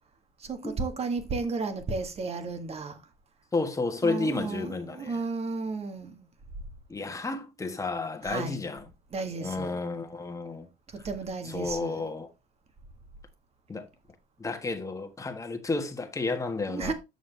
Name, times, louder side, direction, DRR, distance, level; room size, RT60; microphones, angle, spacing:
voice 1, 0.4-3.0 4.0-6.3 8.2-8.6 9.1-9.8 10.9-12.1 16.7-16.9, right 4 dB, 35° right, 1.7 m, -33 dB
voice 2, 3.5-5.2 6.9-8.8 9.4-10.7 11.4-12.3 13.7-13.9 14.4-16.9, left 3 dB, 20° left, 1.5 m, -31 dB
7.9 x 6.4 x 3.3 m
cardioid pair, 110°, 17 cm